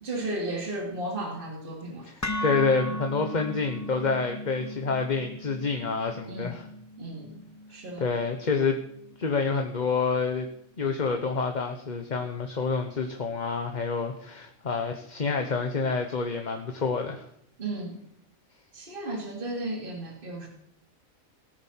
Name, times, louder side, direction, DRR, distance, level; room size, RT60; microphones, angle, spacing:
voice 1, 0.0-2.1 6.3-6.5 7.0-7.3 7.7-8.0 17.6-18.0 18.7-20.5, right 2 dB, 40° right, 0 dB, 2.7 m, -34 dB
voice 2, 2.0-6.7 8.0-8.8 9.2-10.5 10.8-17.3, left 4 dB, 35° left, 5 dB, 1.1 m, -28 dB
sound 1, 2.2-10.3, left 1 dB, 20° left, 0.5 m, -38 dB
18.0 x 9.0 x 5.7 m, 0.72 s
omnidirectional pair, 1.4 m